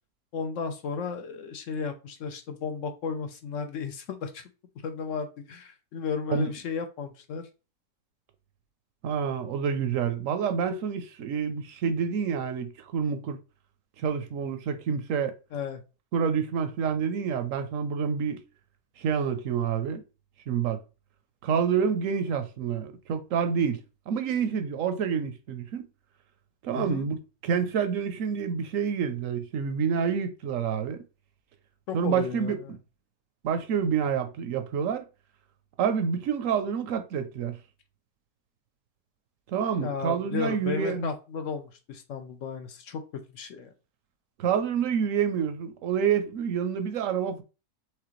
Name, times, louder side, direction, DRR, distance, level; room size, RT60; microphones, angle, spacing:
voice 1, 0.3-4.4 4.8-7.5 15.5-15.8 26.7-27.1 31.9-32.7 39.8-43.0 43.3-43.7, left 5 dB, 60° left, 0.9 m, -34 dB
voice 2, 9.0-13.4 14.0-15.3 16.1-18.4 19.0-20.0 20.5-20.8 21.4-23.8 24.1-25.8 26.6-31.0 31.9-32.8 33.4-35.1 35.8-37.6 39.5-41.1 44.4-47.4, right 7 dB, 65° right, 0.9 m, -28 dB
4.9 x 3.5 x 3.0 m
omnidirectional pair, 1.7 m